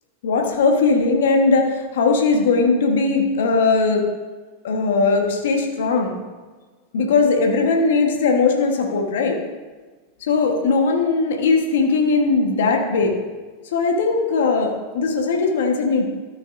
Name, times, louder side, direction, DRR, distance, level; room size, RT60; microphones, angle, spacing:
voice 1, 0.2-4.0 4.6-6.2 6.9-9.4 10.2-13.2 13.7-16.1, left 4 dB, 70° left, 2 dB, 1.3 m, -19 dB
13.5 x 6.3 x 2.6 m, 1.3 s
hypercardioid pair, 95°, 0 cm